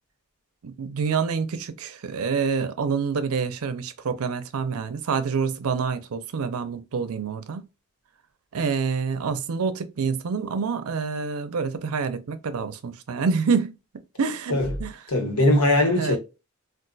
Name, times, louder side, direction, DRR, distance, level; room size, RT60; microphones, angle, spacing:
voice 1, 0.6-7.7 8.5-13.8 14.2-15.0 15.9-16.2, right 5 dB, 75° right, 0.5 m, -27 dB
voice 2, 15.1-16.2, left 1 dB, 85° left, 1.3 m, -20 dB
3.8 x 2.4 x 2.3 m
head